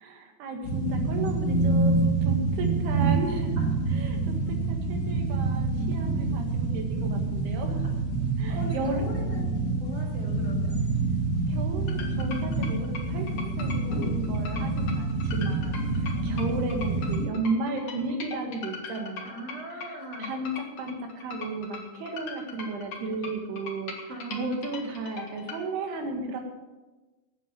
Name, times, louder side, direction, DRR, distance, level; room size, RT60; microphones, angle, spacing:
voice 1, 0.0-3.6 3.9-7.8 8.4-9.0 11.5-20.5 20.8-26.4, right 3 dB, 85° right, 4 dB, 3.9 m, -34 dB
sound 1, 0.6-17.3, right 3 dB, 65° left, 0.7 m, -27 dB
voice 2, 8.5-10.7 16.2-16.4 19.2-20.3 24.1-24.9, right 1 dB, 40° right, -4 dB, 4.0 m, -39 dB
sound 2, 11.9-25.6, left 4 dB, 50° left, 2.5 m, -40 dB
10.5 x 8.4 x 9.0 m, 1.2 s
omnidirectional pair, 4.5 m